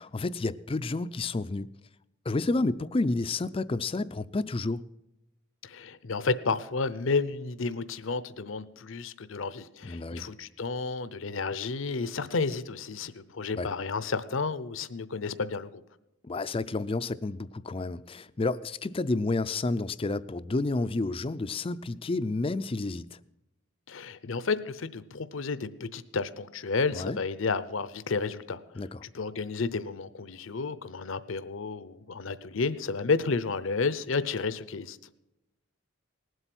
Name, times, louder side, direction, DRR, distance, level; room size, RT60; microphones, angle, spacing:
voice 1, 0.0-1.7 2.3-4.8 9.8-10.2 13.6-13.7 16.2-23.2 26.9-27.2 28.8-29.0, left 2 dB, 25° left, 0.4 m, -30 dB
voice 2, 5.6-15.8 23.9-35.0, left 4 dB, 65° left, 0.7 m, -31 dB
19.0 x 8.0 x 5.9 m
head